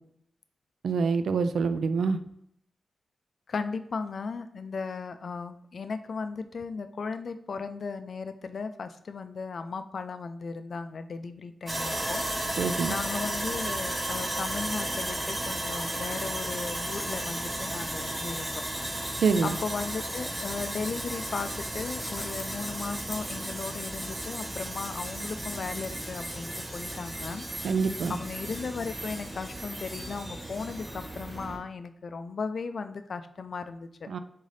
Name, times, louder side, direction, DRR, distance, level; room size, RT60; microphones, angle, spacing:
voice 1, 0.8-2.2 12.6-13.0 19.2-19.6 27.6-28.2 34.1-34.2, right 5 dB, 85° right, 11 dB, 0.3 m, -26 dB
voice 2, 3.5-12.2 12.9-18.6 19.4-27.4 28.1-34.1, left 4 dB, 60° left, 10 dB, 0.3 m, -36 dB
Sawing, 11.7-31.6, right 1 dB, 25° right, 1.2 m, -34 dB
sound 1, 21.7-27.6, left 2 dB, 25° left, 0.7 m, -47 dB
3.7 x 3.2 x 4.0 m, 0.71 s
wide cardioid pair, 90°, 0 cm